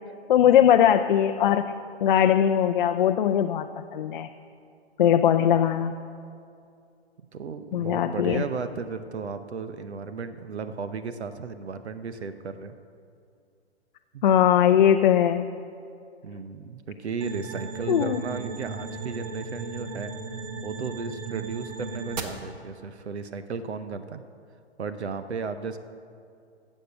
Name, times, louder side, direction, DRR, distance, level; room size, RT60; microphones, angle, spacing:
voice 1, 0.3-1.7 2.0-3.7 3.9-4.3 5.0-5.9 7.7-8.4 14.2-15.5 17.9-18.2, left 10 dB, 45° left, 6 dB, 0.5 m, -20 dB
voice 2, 7.3-12.7 14.1-14.2 16.2-20.1 20.6-24.2 24.8-25.8, right 5 dB, 70° right, 11 dB, 0.8 m, -34 dB
sound 1, 17.2-22.2, right 4 dB, 40° right, 1.2 m, -36 dB
11.5 x 7.4 x 7.9 m, 2.4 s
figure-of-eight pair, 120°, 34 cm